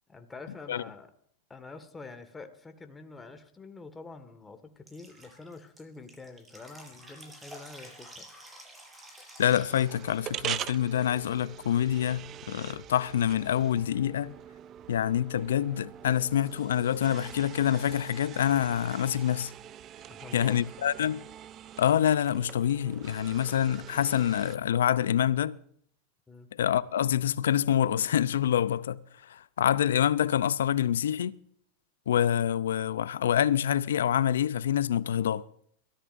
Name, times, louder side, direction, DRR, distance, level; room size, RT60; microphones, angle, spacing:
voice 1, 0.1-1.1 1.5-8.3 20.1-20.7 26.3-26.5, left 3 dB, 15° left, 1.9 m, -46 dB
Drip, 4.9-10.5, right 1 dB, 15° right, 7.0 m, -50 dB
voice 2, 9.4-14.3 14.9-19.5 20.3-21.2 21.8-25.6 26.5-31.3 32.1-35.4, left 10 dB, 75° left, 0.6 m, -26 dB
sound 1, 9.7-24.6, right 11 dB, 40° right, 0.5 m, -43 dB
23.0 x 14.5 x 2.7 m
hypercardioid pair, 95°, 0 cm